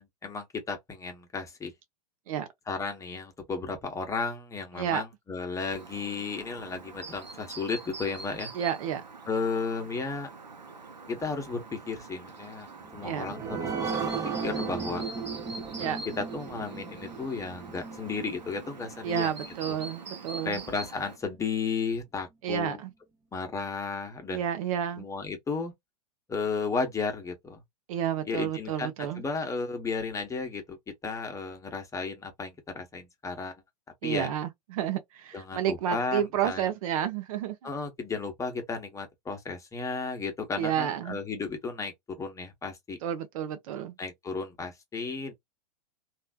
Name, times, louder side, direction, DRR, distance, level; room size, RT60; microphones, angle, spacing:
voice 1, 0.0-1.7 2.7-8.5 9.3-10.3 11.1-14.0 14.4-15.0 15.8-19.3 19.7-19.8 20.4-22.8 23.3-24.4 25.0-25.7 26.3-27.6 28.3-30.8 31.0-33.5 34.0-34.3 35.3-36.7 37.6-43.0 44.0-45.3, left 4 dB, 15° left, 1.0 m, -34 dB
Chirp tweet, 5.7-21.2, right 3 dB, 85° right, 0.8 m, -44 dB
voice 2, 8.5-9.0 13.0-13.3 15.8-16.0 19.0-20.6 22.4-22.9 24.3-25.0 27.9-29.2 34.0-37.6 40.6-41.2 43.0-44.0, right 9 dB, 55° right, 0.7 m, -30 dB
sound 1, 12.8-19.9 20.3-20.4 20.8-20.9, right 5 dB, 15° right, 0.8 m, -36 dB
3.2 x 2.5 x 2.2 m
figure-of-eight pair, 100°, 21 cm